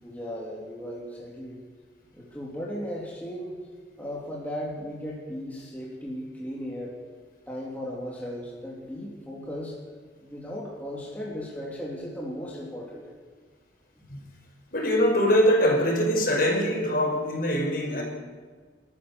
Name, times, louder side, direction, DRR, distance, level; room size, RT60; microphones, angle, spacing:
voice 1, 0.0-1.6 2.1-3.6 4.0-6.9 7.5-9.8 10.2-13.2 14.0-14.1, equal, 10° left, -4 dB, 3.2 m, -36 dB
voice 2, 14.7-18.0, equal, 50° left, 0 dB, 5.5 m, -23 dB
30.0 x 13.5 x 7.0 m, 1.5 s
head